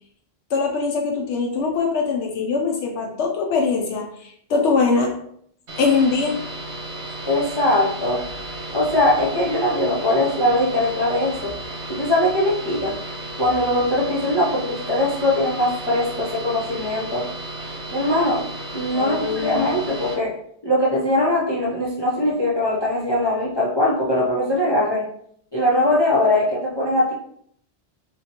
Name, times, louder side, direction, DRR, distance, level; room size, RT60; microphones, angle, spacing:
voice 1, 0.5-5.2 5.8-6.4 18.9-19.7, left 4 dB, 80° left, 0 dB, 0.9 m, -22 dB
sound 1, 5.7-20.1, right 1 dB, 80° right, 1.4 m, -34 dB
voice 2, 7.3-8.2 8.7-11.5 11.9-12.9 13.4-17.3 17.9-18.5 18.7-20.4 20.6-25.1 25.5-27.1, left 1 dB, 25° left, -5 dB, 0.6 m, -21 dB
4.1 x 3.0 x 2.8 m, 0.67 s
omnidirectional pair, 1.1 m